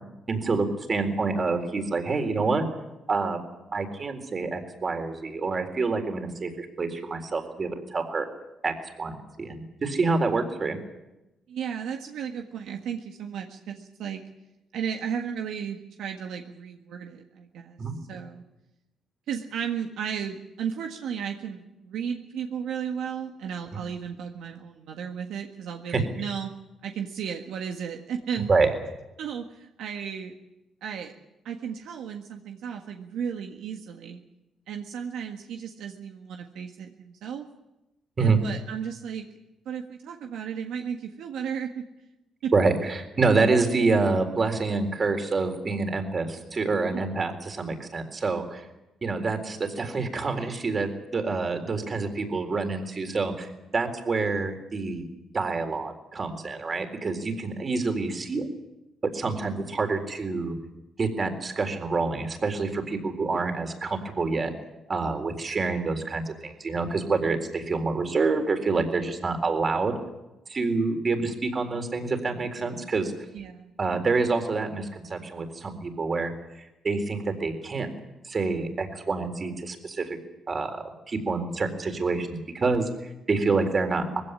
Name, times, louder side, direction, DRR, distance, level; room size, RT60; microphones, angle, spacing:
voice 1, 0.3-2.6 3.1-3.4 3.7-8.3 8.6-10.8 17.8-18.0 25.9-26.0 28.5-28.7 38.2-38.4 42.5-48.6 49.0-55.0 55.3-58.5 59.1-60.6 61.0-64.5 64.9-69.9 70.5-73.1 73.8-76.3 76.8-77.9 78.2-80.2 80.5-80.7 81.1-84.2, right 4 dB, 35° right, 6 dB, 3.9 m, -27 dB
voice 2, 11.5-14.2 14.7-17.8 18.1-18.4 19.3-26.5 26.8-28.5 29.2-30.3 30.8-31.1 31.4-34.2 34.7-37.5 38.2-39.3 39.6-41.8 42.4-42.5 46.9-47.3 73.3-73.7, right 7 dB, 80° right, 3 dB, 1.7 m, -34 dB
20.5 x 16.0 x 9.9 m, 0.98 s
cardioid pair, 90°, 0 cm